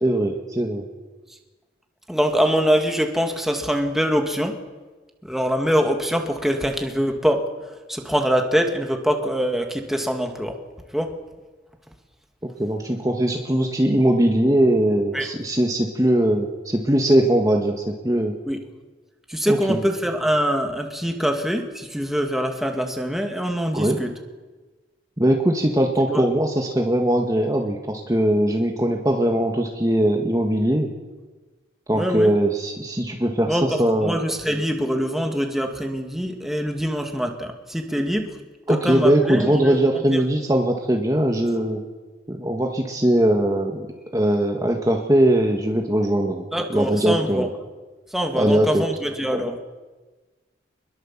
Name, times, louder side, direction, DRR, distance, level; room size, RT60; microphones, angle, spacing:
voice 1, 0.0-0.8 12.4-18.3 19.5-19.8 23.7-24.0 25.2-30.9 31.9-34.2 38.7-41.8 42.3-43.9 44.1-47.5 48.3-48.8, right 1 dB, 20° right, 2 dB, 1.8 m, -20 dB
voice 2, 2.1-4.5 5.3-7.4 7.9-10.5 10.9-11.1 15.1-15.3 18.5-18.6 19.3-24.1 26.1-26.2 31.9-32.3 33.5-38.3 38.7-40.2 46.5-47.5 48.1-49.5, equal, ahead, 3 dB, 2.2 m, -24 dB
25.5 x 21.5 x 7.5 m, 1.3 s
head